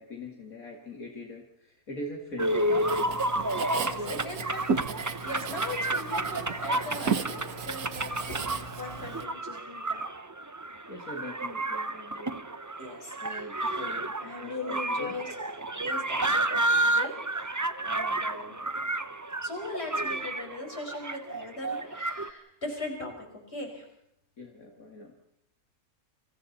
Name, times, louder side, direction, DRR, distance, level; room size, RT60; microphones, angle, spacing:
voice 1, 0.0-3.2 4.0-4.3 10.9-12.8 13.2-15.2 24.4-25.1, left 1 dB, 70° left, 1 dB, 2.6 m, -42 dB
sound 1, 2.4-22.3, right 2 dB, 20° right, 0.5 m, -31 dB
Writing, 2.8-9.2, right 5 dB, 85° right, 1.7 m, -34 dB
voice 2, 3.8-4.6 5.1-10.1 12.8-13.5 13.8-15.3 15.8-18.6 19.4-23.8, left 2 dB, 45° left, 1 dB, 5.6 m, -39 dB
30.0 x 26.0 x 4.2 m, 0.77 s
omnidirectional pair, 1.5 m